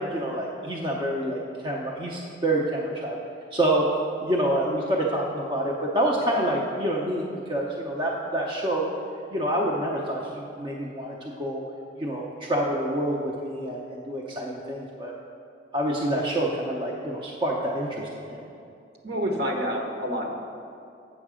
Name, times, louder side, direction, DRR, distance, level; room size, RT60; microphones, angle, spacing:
voice 1, 0.1-3.2 3.5-3.9 4.2-8.9 9.3-11.6 12.0-15.1 15.7-18.4, right 1 dB, 30° right, -3 dB, 0.7 m, -27 dB
voice 2, 19.0-20.4, equal, 60° right, 1 dB, 1.1 m, -28 dB
8.0 x 6.5 x 4.9 m, 2.5 s
head